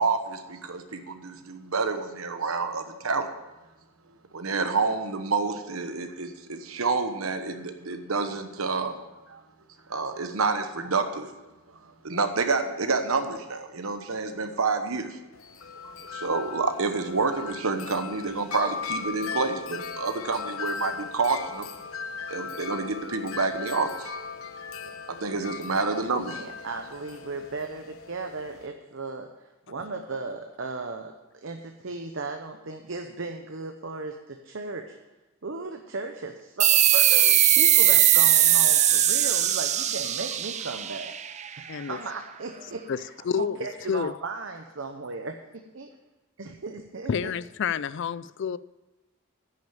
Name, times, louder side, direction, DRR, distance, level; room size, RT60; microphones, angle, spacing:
voice 1, 0.0-3.3 4.3-8.9 9.3-9.4 9.9-11.3 12.0-15.2 15.8-21.7 22.3-24.1 25.1-26.4, right 4 dB, 80° right, 8 dB, 1.1 m, -28 dB
Wind chime, 15.3-28.7, left 5 dB, 80° left, 0.9 m, -38 dB
voice 2, 26.3-31.1 31.4-35.0 35.4-41.1 41.6-43.1 43.4-45.9 46.4-47.3, right 3 dB, 65° right, 5 dB, 0.8 m, -36 dB
sound 1, 36.6-41.8, right 11 dB, 35° right, 0.5 m, -20 dB
voice 3, 43.2-44.1 47.1-48.6, left 7 dB, 60° left, 17 dB, 0.4 m, -29 dB
10.0 x 6.5 x 8.7 m, 1.1 s
head